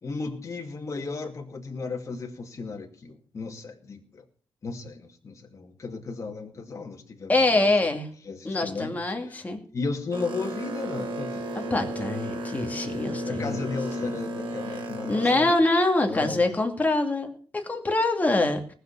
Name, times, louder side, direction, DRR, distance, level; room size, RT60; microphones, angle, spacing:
voice 1, 0.0-4.2 4.6-7.7 8.2-9.4 9.7-11.6 13.3-15.5 16.0-16.6, left 4 dB, 35° left, 2 dB, 2.3 m, -35 dB
voice 2, 7.3-8.1 8.4-9.6 11.6-13.6 15.1-18.7, left 2 dB, 20° left, 3 dB, 2.5 m, -24 dB
Boat Water vehicle, 10.1-15.4, equal, 75° right, 3.2 m, -33 dB
19.0 x 6.6 x 6.9 m, 0.43 s
wide cardioid pair, 130°, 8 cm